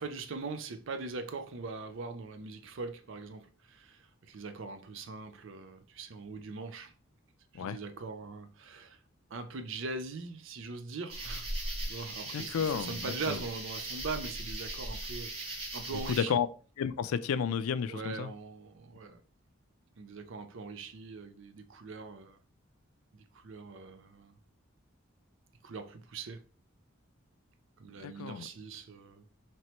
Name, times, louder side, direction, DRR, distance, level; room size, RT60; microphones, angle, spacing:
voice 1, 0.0-6.9 7.5-9.0 9.3-11.5 11.8-16.4 17.9-19.2 20.0-22.4 23.1-24.3 25.6-26.5 27.8-29.2, right 4 dB, 60° right, 0.5 m, -41 dB
sound 1, 11.1-16.2, right 1 dB, 25° right, 0.9 m, -39 dB
voice 2, 12.3-13.4 16.1-16.5 16.8-18.3 28.0-28.5, left 7 dB, 85° left, 0.3 m, -32 dB
3.0 x 2.9 x 4.3 m
head